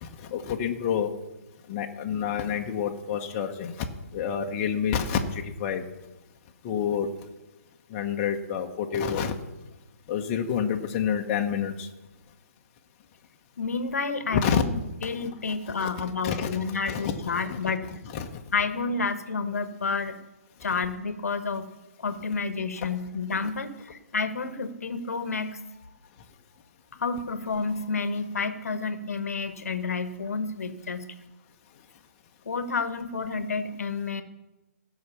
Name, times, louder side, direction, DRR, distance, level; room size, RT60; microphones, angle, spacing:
voice 1, 0.0-1.1 1.7-3.7 4.1-5.8 6.6-7.1 7.9-9.3 10.1-11.9 14.3-14.6 15.0-15.1 15.7-15.9 16.2-17.6 18.0-18.3, left 7 dB, 30° left, 3 dB, 1.1 m, -28 dB
voice 2, 13.6-14.7 15.0-17.9 18.5-20.2 20.6-21.7 22.0-25.6 26.9-31.1 32.4-34.2, left 4 dB, 70° left, 10 dB, 1.2 m, -30 dB
15.5 x 6.1 x 6.9 m, 1.0 s
figure-of-eight pair, 135°, 8 cm